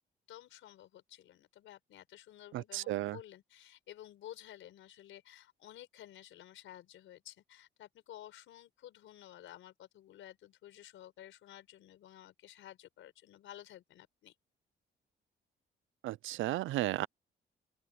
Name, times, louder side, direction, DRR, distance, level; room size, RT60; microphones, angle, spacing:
voice 1, 0.3-14.3, left 12 dB, 80° left, 4.9 m, -53 dB
voice 2, 2.5-3.2 16.0-17.1, right 16 dB, 80° right, 0.5 m, -34 dB
open air
cardioid pair, 90°, 20 cm